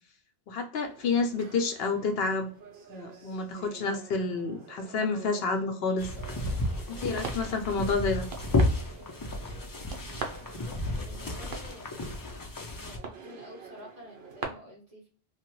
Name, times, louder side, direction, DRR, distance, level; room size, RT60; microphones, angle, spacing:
voice 1, 0.5-2.5 2.9-6.1 6.9-8.3, left 4 dB, 70° left, 5 dB, 0.8 m, -29 dB
sound 1, 0.8-14.4, right 6 dB, 70° right, 0.9 m, -45 dB
sound 2, 6.0-13.0, left 2 dB, 30° left, 0.4 m, -32 dB
voice 2, 10.4-12.2 12.7-15.1, left 1 dB, 35° right, -5 dB, 1.5 m, -50 dB
3.2 x 2.1 x 2.9 m, 0.40 s
omnidirectional pair, 1.1 m